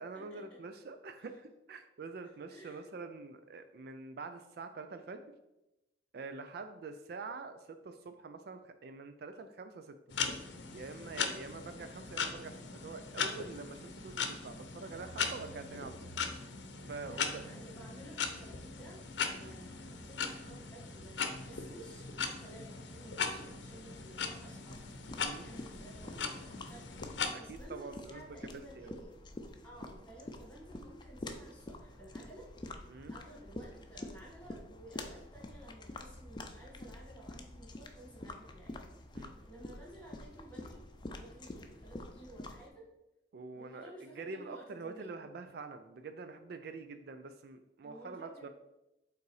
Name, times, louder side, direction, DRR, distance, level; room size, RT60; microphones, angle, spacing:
voice 1, 0.0-5.2 6.1-10.0 10.7-16.0 16.9-17.4 19.4-19.5 25.2-25.5 27.3-28.2 28.5-28.9 32.9-33.1 39.1-39.3 43.3-48.5, right 4 dB, 60° right, 8 dB, 0.4 m, -46 dB
voice 2, 2.2-2.8 6.1-6.2 11.8-12.7 17.1-19.0 19.3-24.8 25.3-26.8 27.1-29.2 29.6-32.5 33.1-39.1 39.4-40.8 41.1-42.8 43.5-45.2 47.8-48.5, right 1 dB, 5° left, -4 dB, 1.9 m, -54 dB
sound 1, 10.1-27.3, left 5 dB, 80° left, 0.7 m, -39 dB
sound 2, 24.7-42.7, left 2 dB, 25° left, 0.5 m, -48 dB
5.4 x 3.9 x 4.7 m, 0.94 s
head